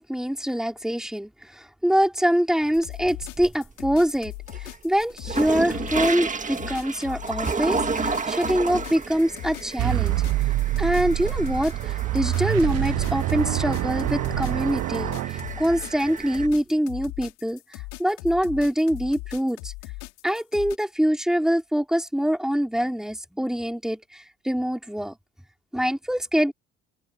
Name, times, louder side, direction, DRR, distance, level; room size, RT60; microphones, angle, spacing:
voice 1, 0.0-10.2 10.8-19.7 20.2-25.1 25.7-26.5, equal, ahead, 4.0 m, -24 dB
sound 1, 2.7-20.8, left 24 dB, 80° left, 5.9 m, -39 dB
sound 2, 2.8-3.7 4.1-16.5, right 4 dB, 25° right, 1.8 m, -32 dB
sound 3, 9.8-16.0, right 16 dB, 55° right, 0.5 m, -26 dB
open air
supercardioid pair, 65°, 31 cm